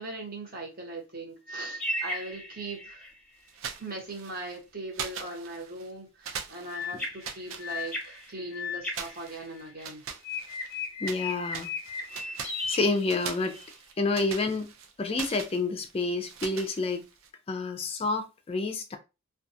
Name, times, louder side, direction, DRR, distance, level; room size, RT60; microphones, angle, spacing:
voice 1, 0.0-3.1 3.8-10.0, right 2 dB, 45° right, 1.0 m, -40 dB
sound 1, 1.5-3.2 6.7-9.8 10.2-13.7, left 3 dB, 5° left, 0.8 m, -36 dB
sound 2, 3.5-4.6 4.9-5.9 6.2-8.3 8.9-11.2 11.5-17.3, right 7 dB, 80° right, 0.4 m, -42 dB
voice 2, 11.0-11.7 12.0-12.4 12.7-13.6 14.0-14.7 15.0-17.0 17.5-19.0, left 3 dB, 30° left, 0.3 m, -29 dB
2.3 x 2.3 x 2.6 m
head